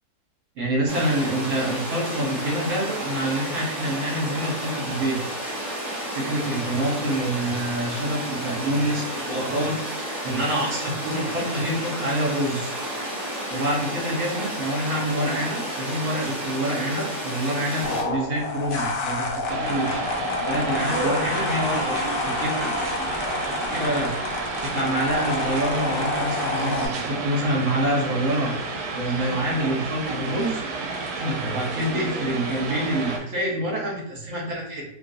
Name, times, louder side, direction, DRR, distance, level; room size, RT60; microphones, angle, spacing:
voice 1, 0.6-5.2 6.1-12.7 13.5-20.0 20.4-22.7 23.5-24.2 24.6-28.5 28.9-30.6 31.2-34.8, right 1 dB, 55° right, -2 dB, 1.2 m, -27 dB
sound 1, 0.9-18.0, right 1 dB, 30° right, 1.2 m, -31 dB
sound 2, 17.8-26.9, left 3 dB, 90° left, 0.5 m, -28 dB
sound 3, 19.5-33.2, right 4 dB, 80° right, 1.1 m, -31 dB
3.0 x 2.5 x 2.5 m, 0.75 s
omnidirectional pair, 1.7 m